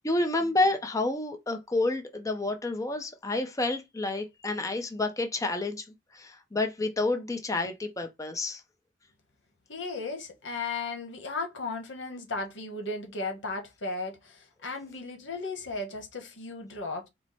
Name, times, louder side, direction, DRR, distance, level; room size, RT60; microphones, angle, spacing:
voice 1, 0.0-5.8 6.1-8.6, left 2 dB, 20° left, 0.6 m, -29 dB
voice 2, 9.7-17.1, left 3 dB, 85° left, 1.2 m, -35 dB
4.5 x 2.1 x 4.1 m
head